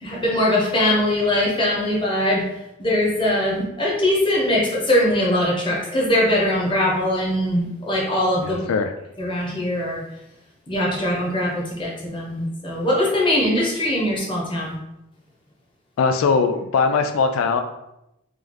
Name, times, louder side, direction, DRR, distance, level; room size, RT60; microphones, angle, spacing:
voice 1, 0.0-2.4 2.8-8.6 9.2-10.0 10.7-14.8, left 1 dB, 25° left, -3 dB, 1.0 m, -21 dB
voice 2, 8.4-8.9 16.0-17.6, left 5 dB, 90° left, 6 dB, 0.3 m, -20 dB
3.3 x 3.0 x 3.7 m, 0.88 s
head